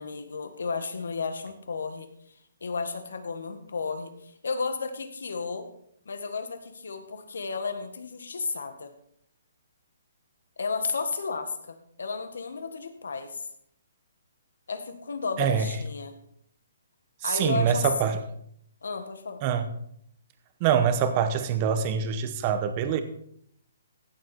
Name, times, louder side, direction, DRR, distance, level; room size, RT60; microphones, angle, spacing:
voice 1, 0.0-2.1 2.6-5.7 6.0-8.9 10.6-13.5 14.7-16.2 17.2-17.9 18.8-19.4, left 4 dB, 85° left, 8 dB, 1.7 m, -33 dB
voice 2, 17.2-18.2 19.4-19.7 20.6-23.0, right 7 dB, 20° right, 9 dB, 0.8 m, -24 dB
15.5 x 7.4 x 4.3 m, 0.69 s
hypercardioid pair, 175°, 0 cm